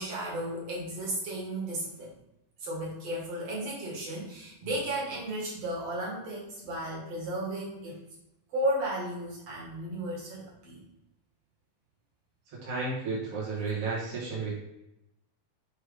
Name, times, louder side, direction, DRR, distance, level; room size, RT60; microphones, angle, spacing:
voice 1, 0.0-2.2 2.6-8.0 8.5-10.8, right 1 dB, 50° right, -4 dB, 2.1 m, -34 dB
voice 2, 12.6-14.6, right 3 dB, 65° right, -7 dB, 1.5 m, -32 dB
6.6 x 3.2 x 4.8 m, 0.87 s
omnidirectional pair, 5.0 m